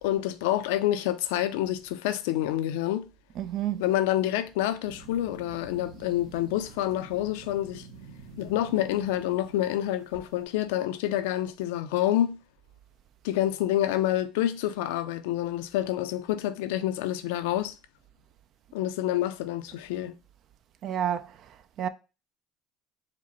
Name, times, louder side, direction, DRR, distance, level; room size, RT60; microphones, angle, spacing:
voice 1, 0.0-3.0 3.8-7.9 8.4-12.4 13.2-17.7 18.7-20.1, left 13 dB, 85° left, 0.4 m, -28 dB
voice 2, 3.4-3.8 20.8-21.9, right 10 dB, 60° right, 0.4 m, -31 dB
sound 1, 4.8-10.4, right 4 dB, 85° right, 0.8 m, -48 dB
4.8 x 2.0 x 4.2 m
supercardioid pair, 85°, 0 cm